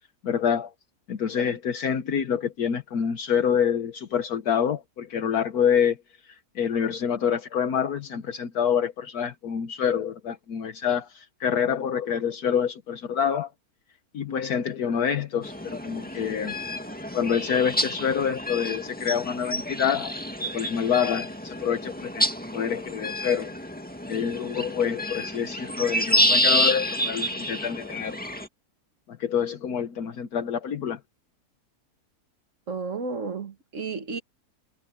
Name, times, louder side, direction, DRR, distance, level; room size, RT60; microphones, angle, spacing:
voice 1, 0.2-0.7 1.1-6.0 6.3-13.5 14.1-16.5 17.1-20.2 20.5-22.3 22.5-23.5 24.1-28.2 29.2-31.0, left 8 dB, 70° left, 1.5 m, -27 dB
sound 1, 15.4-28.5, equal, 5° left, 2.0 m, -28 dB
voice 2, 32.7-34.2, right 4 dB, 50° right, 2.1 m, -32 dB
omnidirectional pair, 1.7 m